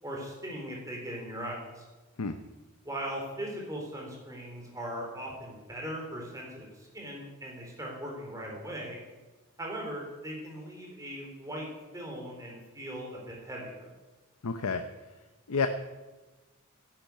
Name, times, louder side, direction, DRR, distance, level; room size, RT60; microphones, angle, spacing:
voice 1, 0.0-1.8 2.8-9.0 9.6-11.7 11.9-13.9, equal, 15° right, -1 dB, 3.8 m, -39 dB
voice 2, 14.4-14.8 15.5-15.7, left 5 dB, 90° left, 7 dB, 0.8 m, -29 dB
11.0 x 10.5 x 9.5 m, 1.2 s
head